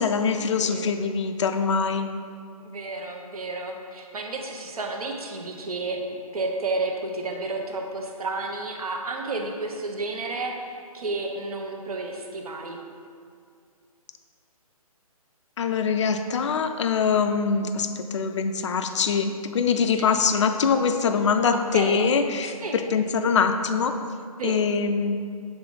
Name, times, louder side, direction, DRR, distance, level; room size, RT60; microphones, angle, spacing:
voice 1, 0.0-2.1 15.6-24.0 24.4-25.2, left 5 dB, 50° left, 7 dB, 0.4 m, -23 dB
voice 2, 2.6-6.0 6.3-12.8 20.0-20.1 21.5-22.1 22.4-22.8 24.4-24.6, right 3 dB, 70° right, 2 dB, 1.0 m, -31 dB
7.8 x 3.6 x 3.9 m, 2.2 s
hypercardioid pair, 165°, 19 cm